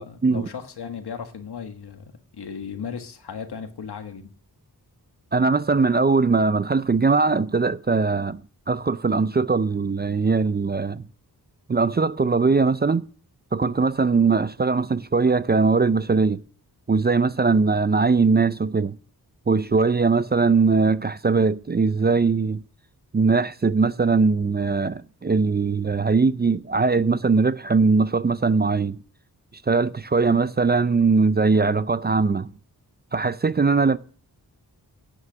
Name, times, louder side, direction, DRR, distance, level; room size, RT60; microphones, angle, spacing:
voice 1, 0.0-4.3, left 6 dB, 85° left, 1.6 m, -36 dB
voice 2, 5.3-8.4 8.7-11.0 11.7-13.1 13.5-16.4 16.9-19.0 19.5-22.6 23.1-29.0 29.7-32.5 33.1-34.0, right 4 dB, 25° right, 0.4 m, -20 dB
9.7 x 8.5 x 6.1 m
wide cardioid pair, 85°, 39 cm